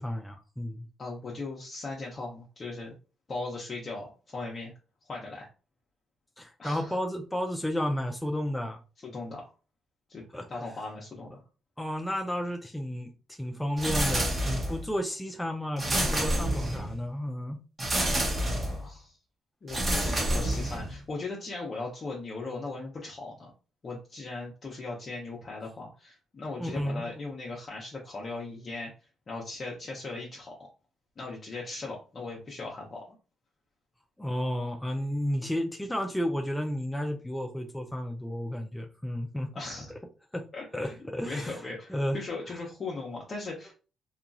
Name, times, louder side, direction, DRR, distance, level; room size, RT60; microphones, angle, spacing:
voice 1, 0.0-0.8 6.4-8.8 10.3-10.5 11.8-17.6 26.6-27.1 34.2-39.5 40.3-40.4 40.7-41.6 41.9-42.2, equal, 5° left, 0.4 m, -32 dB
voice 2, 1.0-2.9 3.3-4.7 5.0-5.5 6.6-6.9 9.0-9.5 10.1-10.2 10.5-11.4 14.3-14.6 17.9-19.2 19.6-23.5 23.8-30.7 31.2-33.0 39.5-39.9 40.5-41.0 41.2-43.7, left 3 dB, 40° left, 0.7 m, -38 dB
sound 1, 13.8-14.9 15.8-17.0 17.8-18.8 19.7-21.0, right 1 dB, 30° right, 1.0 m, -28 dB
2.9 x 2.3 x 2.5 m
cardioid pair, 90°, 0 cm